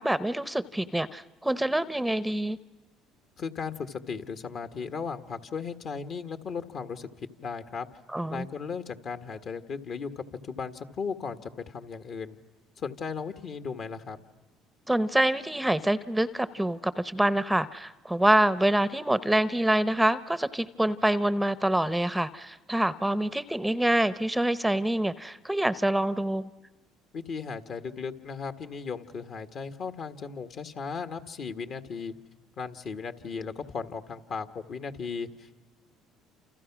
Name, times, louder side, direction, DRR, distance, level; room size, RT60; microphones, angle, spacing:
voice 1, 0.0-2.6 8.1-8.5 14.9-26.5, right 1 dB, 5° right, 15 dB, 0.8 m, -26 dB
voice 2, 3.4-7.1 7.4-7.9 8.3-12.4 12.8-14.2 27.1-32.1 32.6-35.5, left 5 dB, 55° left, 8 dB, 1.7 m, -36 dB
29.0 x 28.5 x 6.1 m, 1.2 s
supercardioid pair, 75°, 0 cm